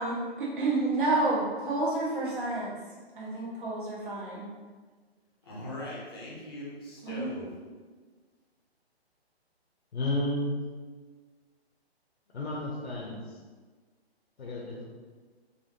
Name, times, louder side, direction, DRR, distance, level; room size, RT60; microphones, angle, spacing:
voice 1, 0.0-2.8 3.1-4.5 7.0-7.3, right 2 dB, 50° right, -6 dB, 1.3 m, -29 dB
voice 2, 5.5-7.5, left 1 dB, 25° left, -6 dB, 0.7 m, -40 dB
voice 3, 9.9-10.6 12.3-13.4 14.4-14.8, left 1 dB, 85° left, -4 dB, 0.9 m, -32 dB
4.1 x 2.7 x 2.7 m, 1.4 s
hypercardioid pair, 165°, 32 cm